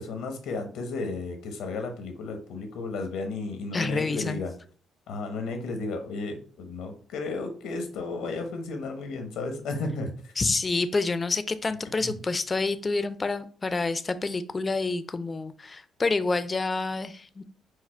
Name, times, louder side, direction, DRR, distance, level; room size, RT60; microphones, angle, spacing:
voice 1, 0.0-4.5 5.1-10.3 12.0-12.2, left 3 dB, 85° left, 5 dB, 0.9 m, -33 dB
voice 2, 3.7-4.4 10.4-17.4, left 3 dB, 30° left, 12 dB, 0.4 m, -28 dB
4.8 x 2.0 x 4.3 m, 0.43 s
cardioid pair, 90°, 0 cm